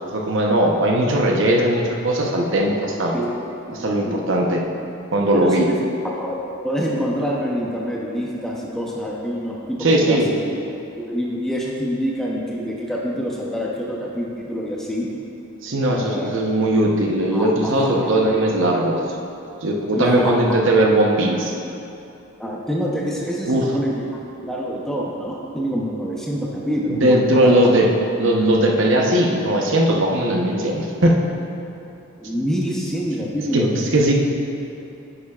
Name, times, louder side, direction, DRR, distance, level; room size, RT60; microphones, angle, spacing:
voice 1, 0.1-3.1 3.7-4.6 5.1-5.7 9.8-10.3 15.6-19.0 19.6-21.5 23.5-23.6 26.9-27.9 28.2-31.2 33.5-34.1, right 1 dB, 60° right, 0 dB, 0.9 m, -19 dB
voice 2, 5.3-5.7 6.0-6.4 6.6-10.5 11.0-15.1 15.9-16.4 17.3-18.1 20.0-20.4 22.4-24.0 24.4-27.6 32.2-33.7, equal, ahead, -4 dB, 0.7 m, -26 dB
10.0 x 8.7 x 2.4 m, 2.8 s
head